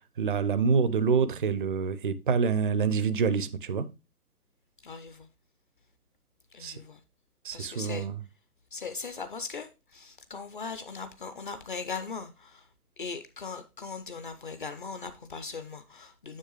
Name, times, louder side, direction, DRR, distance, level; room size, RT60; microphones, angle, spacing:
voice 1, 0.2-3.9 6.6-6.8 7.4-8.2, right 5 dB, 35° right, 0.4 m, -26 dB
voice 2, 4.8-5.3 6.5-7.0 7.5-8.1 8.7-12.7 13.0-16.4, left 5 dB, 35° left, 0.5 m, -39 dB
7.4 x 6.1 x 3.0 m
figure-of-eight pair, 125°, 46 cm